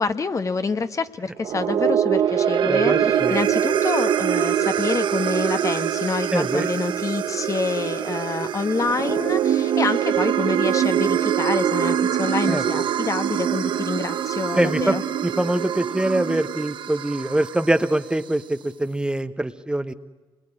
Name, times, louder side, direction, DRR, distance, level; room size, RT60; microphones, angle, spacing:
voice 1, 0.0-15.0, left 4 dB, 35° left, 10 dB, 1.3 m, -27 dB
sound 1, 1.4-17.8, right 9 dB, 60° right, 0.9 m, -23 dB
voice 2, 2.6-3.4 6.3-6.7 12.5-12.6 14.5-19.9, right 1 dB, 10° right, 10 dB, 1.0 m, -24 dB
27.0 x 22.0 x 9.9 m, 1.3 s
cardioid pair, 75°, 9 cm